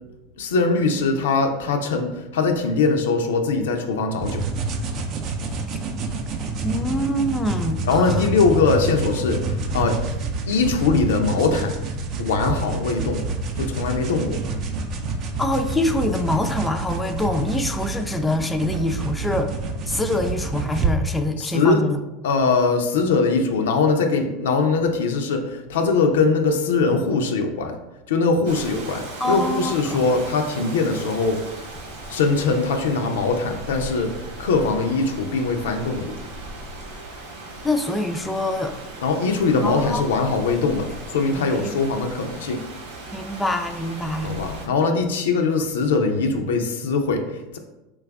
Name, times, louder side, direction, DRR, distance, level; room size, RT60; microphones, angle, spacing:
voice 1, 0.4-4.4 7.8-10.0 10.5-11.8 12.2-13.2 13.6-14.4 21.4-21.8 22.2-27.8 28.1-31.4 32.1-34.1 34.4-36.1 39.0-42.6 44.2-47.6, left 4 dB, 75° left, 5 dB, 0.4 m, -21 dB
sound 1, 4.2-20.9, right 3 dB, 45° right, 0.5 m, -28 dB
voice 2, 6.6-8.3 15.4-19.5 19.9-22.0 29.2-30.0 37.6-38.7 39.6-40.0 41.2-41.7 43.1-44.4 45.6-45.7, left 1 dB, 10° left, 6 dB, 0.3 m, -25 dB
Rain, 28.4-44.7, right 2 dB, 80° right, 0.8 m, -38 dB
3.2 x 2.3 x 3.4 m, 1.0 s
hypercardioid pair, 90°, 0 cm